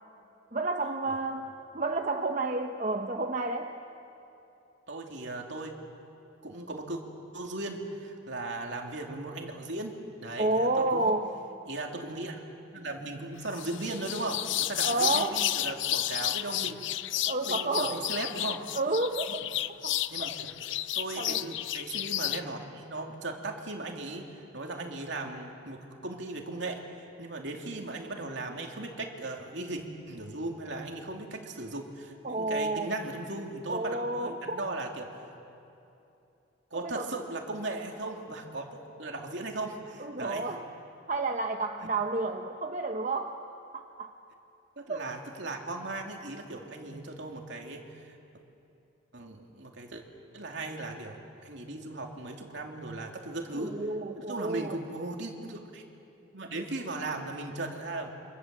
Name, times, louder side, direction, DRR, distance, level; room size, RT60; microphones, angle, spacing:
voice 1, 0.5-3.7 10.4-11.3 14.8-15.4 17.1-18.1 18.7-19.4 19.8-20.4 21.2-21.4 32.2-32.9 33.7-34.6 36.8-37.1 40.0-40.7 41.1-43.4 43.7-44.1 44.9-45.0 53.5-54.8, right 2 dB, 35° right, 3 dB, 1.0 m, -30 dB
voice 2, 4.9-5.7 6.4-7.0 7.3-11.1 11.7-12.4 12.7-16.7 17.5-18.7 20.1-20.5 20.9-35.1 36.7-40.5 44.8-48.1 49.1-50.0 50.3-53.8 54.2-55.8 56.3-58.1, right 2 dB, 60° right, 1 dB, 2.9 m, -37 dB
sound 1, 13.5-22.4, left 13 dB, 65° left, 0.6 m, -32 dB
27.5 x 25.5 x 7.7 m, 2.8 s
head